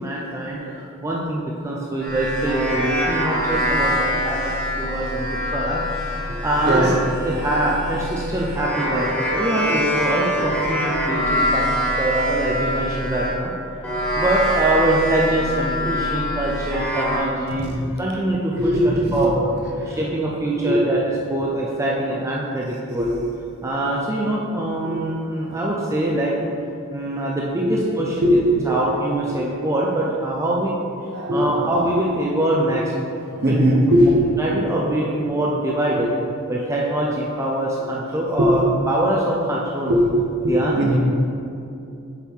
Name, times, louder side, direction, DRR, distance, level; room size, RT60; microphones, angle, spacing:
voice 1, 0.0-6.9 7.2-13.5 14.2-17.6 18.0-18.7 19.1-19.4 19.9-21.0 21.3-23.1 23.6-26.4 26.9-28.4 28.7-30.8 31.3-32.8 33.4-33.6 34.4-36.1 36.5-40.0 40.5-40.7, right 1 dB, 15° right, -4 dB, 0.4 m, -24 dB
sound 1, 2.0-13.4 13.8-17.2, equal, 5° left, 1.4 m, -24 dB
voice 2, 18.6-19.3 19.9-20.0 20.6-20.8 23.0-23.1 24.8-24.9 25.5-25.6 27.6-27.7 28.2-28.8 29.3-29.4 31.1-31.7 32.7-32.8 33.4-34.2 35.9-36.1 38.4-38.5 39.9-40.1 40.4-41.0, equal, 50° right, -1 dB, 0.9 m, -19 dB
7.1 x 3.7 x 4.5 m, 2.7 s
head